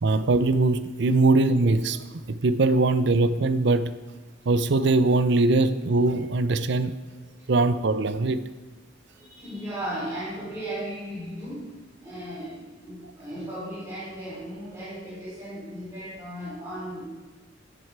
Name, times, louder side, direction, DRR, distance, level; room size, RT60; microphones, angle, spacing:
voice 1, 0.0-3.9 4.5-7.0 7.5-8.4, right 3 dB, 65° right, 0.6 m, -22 dB
voice 2, 7.1-7.5 9.1-11.7 12.0-17.1, right 1 dB, 15° right, 3.1 m, -36 dB
13.0 x 7.8 x 4.7 m
head